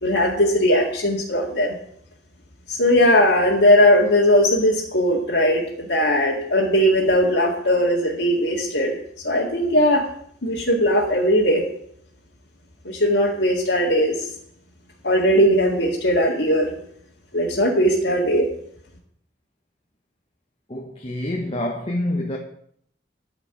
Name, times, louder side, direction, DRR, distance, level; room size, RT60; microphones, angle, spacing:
voice 1, 0.0-1.7 2.7-8.9 9.2-10.1 10.4-11.6 12.8-14.3 15.0-16.7 17.3-18.5, equal, 75° left, 2.1 m, -19 dB
voice 2, 20.7-22.4, left 1 dB, 30° left, 1.1 m, -27 dB
13.0 x 5.1 x 9.0 m
head